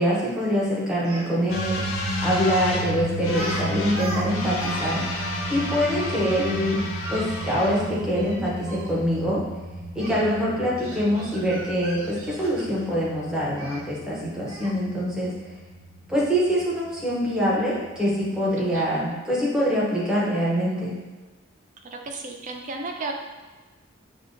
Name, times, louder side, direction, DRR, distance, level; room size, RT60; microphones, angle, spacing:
voice 1, 0.0-1.8 2.2-5.0 5.5-6.8 7.1-9.4 9.9-15.3 16.1-21.0, equal, 5° right, -6 dB, 0.7 m, -24 dB
Speech, 1.0-1.3 2.6-2.8 3.3-3.6 3.9-4.8 5.1-5.2 6.7-8.9 10.0-10.2 10.8-12.9 13.6-13.8 14.5-14.8, right 1 dB, 90° right, 0.7 m, -38 dB
sound 1, 1.5-19.0, equal, 85° left, 0.6 m, -32 dB
voice 2, 18.6-18.9 21.9-23.1, right 3 dB, 40° right, 2 dB, 0.4 m, -34 dB
5.2 x 2.1 x 2.6 m, 1.3 s
head